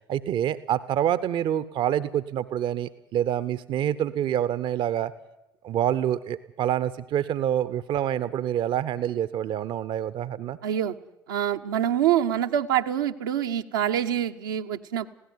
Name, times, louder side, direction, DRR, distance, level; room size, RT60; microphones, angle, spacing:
voice 1, 0.1-5.1 5.6-10.6, right 10 dB, 45° right, 15 dB, 0.9 m, -27 dB
voice 2, 10.6-10.9 11.3-15.1, right 10 dB, 70° right, 3 dB, 1.0 m, -25 dB
21.5 x 16.5 x 9.5 m, 0.91 s
figure-of-eight pair, 60°, 11 cm